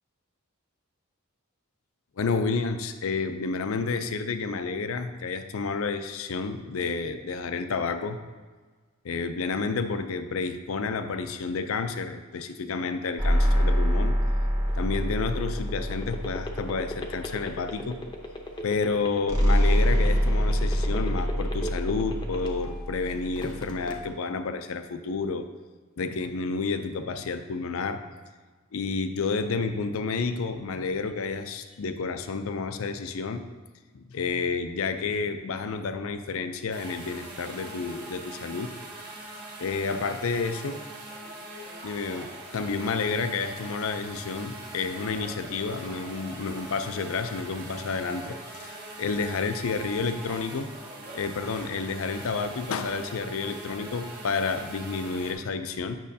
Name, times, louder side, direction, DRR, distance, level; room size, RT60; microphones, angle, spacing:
voice 1, 2.2-8.2 9.0-14.2 14.7-18.0 18.6-25.4 26.0-28.0 28.7-33.4 33.9-38.7 39.6-40.8 41.8-50.7 51.1-56.0, left 4 dB, 70° left, 9 dB, 0.5 m, -30 dB
sound 1, 13.2-17.7 19.3-24.1, equal, 15° right, 1.1 m, -25 dB
sound 2, 14.6-22.8 23.2-23.9, left 1 dB, 20° left, 0.7 m, -36 dB
sound 3, 36.7-55.3, right 2 dB, 50° right, 1.5 m, -42 dB
8.6 x 6.2 x 2.7 m, 1.4 s
head